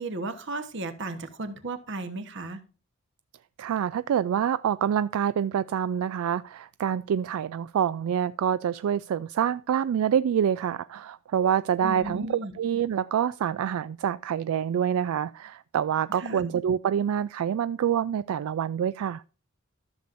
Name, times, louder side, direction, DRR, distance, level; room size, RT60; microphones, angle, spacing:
voice 1, 0.0-2.6 11.8-12.5 16.2-16.5, right 2 dB, 55° right, 1.2 m, -35 dB
voice 2, 3.6-19.2, right 8 dB, 75° right, 0.3 m, -26 dB
13.5 x 6.9 x 2.5 m
head